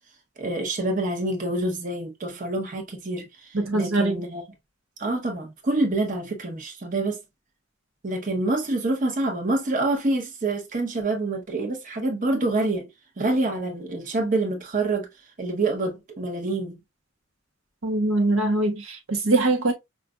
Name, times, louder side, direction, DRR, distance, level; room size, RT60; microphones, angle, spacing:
voice 1, 0.4-4.4 5.0-7.2 8.0-12.9 13.2-15.1 15.4-16.8, right 2 dB, 40° right, 0.8 m, -26 dB
voice 2, 3.5-4.2 17.8-19.7, right 2 dB, 90° right, 0.9 m, -22 dB
5.0 x 2.4 x 2.3 m
head